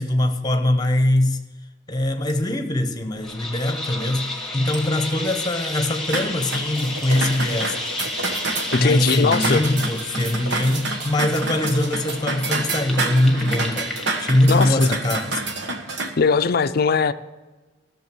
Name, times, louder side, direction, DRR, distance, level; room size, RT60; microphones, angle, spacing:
voice 1, 0.0-1.4 1.9-7.9 8.8-13.9 14.2-15.5, left 1 dB, 20° left, 1.0 m, -22 dB
sound 1, 2.3-2.4 3.0-3.1 3.6-3.8 4.7-4.9 5.8-6.0 7.0-7.2 8.3-8.4, right 2 dB, 40° right, 1.9 m, -43 dB
sound 2, 3.2-14.7, left 2 dB, ahead, 1.5 m, -32 dB
sound 3, 6.1-16.1, right 3 dB, 65° right, 1.3 m, -28 dB
voice 2, 8.7-9.7 14.5-14.9 16.2-17.1, left 5 dB, 50° left, 0.5 m, -20 dB
15.5 x 6.8 x 6.1 m
head